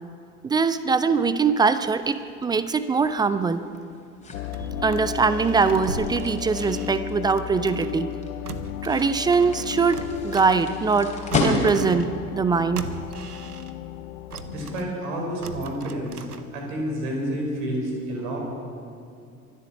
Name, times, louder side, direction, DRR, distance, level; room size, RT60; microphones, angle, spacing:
voice 1, 0.4-3.6 4.8-8.1 8.8-11.2 11.4-12.9, right 5 dB, 10° right, 13 dB, 0.3 m, -22 dB
sound 1, 1.7-12.1, left 2 dB, 15° left, 3.1 m, -32 dB
sound 2, 4.3-14.9, left 14 dB, 70° left, 0.6 m, -35 dB
sound 3, 4.3-8.1 8.4-11.0 11.3-13.9 14.3-16.8 17.2-17.3, right 4 dB, 85° right, 0.8 m, -39 dB
voice 2, 14.4-16.2 16.5-18.4, equal, 60° right, 0 dB, 4.8 m, -29 dB
23.5 x 8.0 x 7.4 m, 2.5 s
figure-of-eight pair, 70°, 44 cm